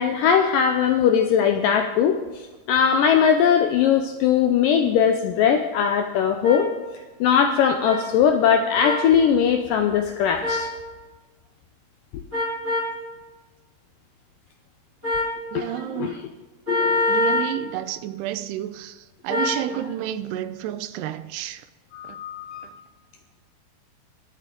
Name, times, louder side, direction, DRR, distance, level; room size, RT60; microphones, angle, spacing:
voice 1, 0.0-2.2 2.7-6.7 7.2-10.7 15.5-16.2 16.7-17.0 21.9-22.7, left 7 dB, 80° left, 2.0 m, -20 dB
sound 1, 6.4-6.6 7.8-8.0 8.8-9.1 10.4-10.7 12.3-12.9 15.0-15.3 16.7-17.5 19.3-19.6, left 2 dB, 15° right, 4.6 m, -24 dB
voice 2, 15.5-16.2 17.1-19.0 19.2-21.6, right 12 dB, 85° right, 2.7 m, -30 dB
22.5 x 8.3 x 3.8 m
omnidirectional pair, 4.6 m